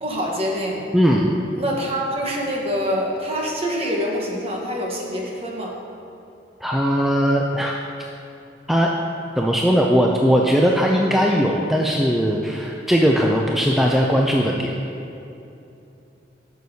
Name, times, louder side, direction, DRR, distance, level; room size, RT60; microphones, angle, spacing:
voice 1, 0.0-1.0 1.5-5.7, equal, 35° right, -2 dB, 1.2 m, -25 dB
voice 2, 0.9-1.3 6.6-7.8 8.7-8.9 9.4-14.7, equal, ahead, -1 dB, 0.3 m, -19 dB
11.0 x 6.4 x 2.8 m, 2.8 s
head